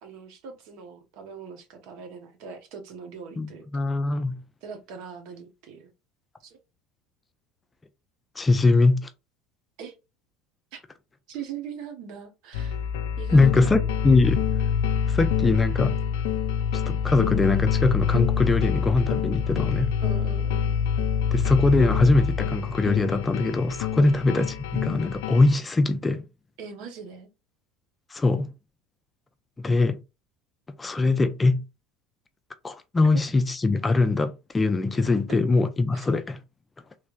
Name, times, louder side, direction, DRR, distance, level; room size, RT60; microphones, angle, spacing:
voice 1, 0.0-3.8 4.6-5.9 6.4-6.6 9.8-9.9 10.7-10.8 11.3-12.9 13.2-13.9 20.0-20.7 24.0-24.2 26.6-27.3 35.3-35.4 35.9-36.1, right 6 dB, 65° right, 1.0 m, -41 dB
voice 2, 3.4-4.4 8.4-9.1 13.3-14.4 15.1-16.0 16.9-19.9 21.3-26.2 28.1-28.5 29.6-30.0 30.8-31.6 32.6-36.4, left 3 dB, 20° left, 0.5 m, -22 dB
sound 1, 12.5-25.5, left 7 dB, 85° left, 0.3 m, -26 dB
3.2 x 3.2 x 2.5 m
supercardioid pair, 105°, 0 cm